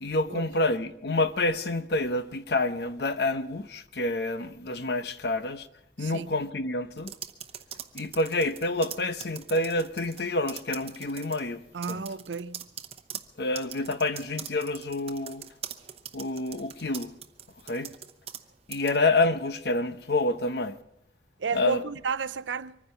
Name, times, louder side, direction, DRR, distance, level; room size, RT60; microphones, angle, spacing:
voice 1, 0.0-5.7 6.0-7.1 7.9-11.6 11.9-12.0 13.4-15.5 16.1-17.1 17.7-17.9 18.7-20.8 21.5-21.8, left 2 dB, 65° left, 0.9 m, -28 dB
voice 2, 6.0-6.3 11.7-12.7 21.4-22.8, right 5 dB, 90° right, 0.6 m, -32 dB
sound 1, 7.0-10.2 10.5-11.4 11.8-18.4 18.7-19.0, right 9 dB, 35° right, 0.8 m, -41 dB
24.0 x 10.0 x 5.6 m
head